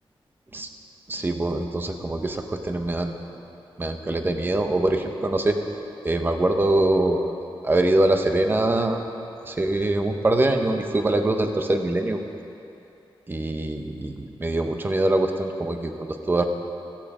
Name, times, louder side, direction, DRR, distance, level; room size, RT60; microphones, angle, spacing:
voice 1, 1.1-3.1 3.8-5.6 6.0-7.2 7.6-9.0 9.5-12.2 13.3-16.5, right 2 dB, 20° right, 5 dB, 1.0 m, -23 dB
16.0 x 15.0 x 5.0 m, 2.8 s
wide cardioid pair, 170°, 9 cm